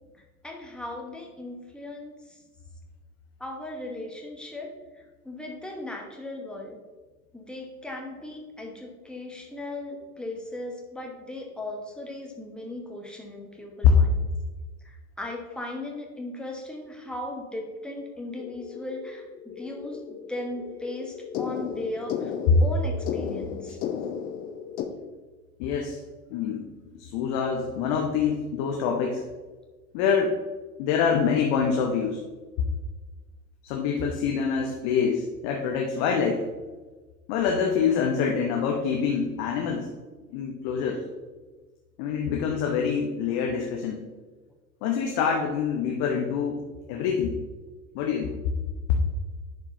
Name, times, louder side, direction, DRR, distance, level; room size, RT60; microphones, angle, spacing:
voice 1, 0.4-2.1 3.4-4.7 5.2-6.8 7.3-14.1 14.8-22.3 22.6-23.8, left 1 dB, ahead, 0 dB, 1.1 m, -37 dB
sound 1, 18.4-24.8, left 8 dB, 20° left, 0.4 m, -35 dB
voice 2, 25.6-26.0 26.3-26.6 26.9-29.2 29.9-30.3 30.8-32.2 33.6-36.5 37.3-39.9 40.3-41.0 42.0-44.0 44.8-46.6 46.9-47.4 47.9-48.4, left 6 dB, 40° left, 1 dB, 1.0 m, -25 dB
10.5 x 4.8 x 2.9 m, 1.3 s
figure-of-eight pair, 85°, 44 cm